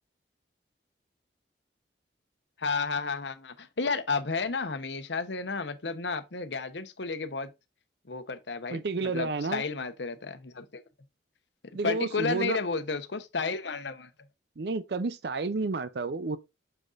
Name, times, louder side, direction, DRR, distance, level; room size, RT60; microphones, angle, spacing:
voice 1, 2.6-7.5 8.1-10.8 11.6-14.1, left 4 dB, 80° left, 0.9 m, -32 dB
voice 2, 8.7-9.6 11.7-12.6 14.6-16.4, right 3 dB, 65° right, 0.5 m, -30 dB
6.9 x 6.2 x 2.5 m
head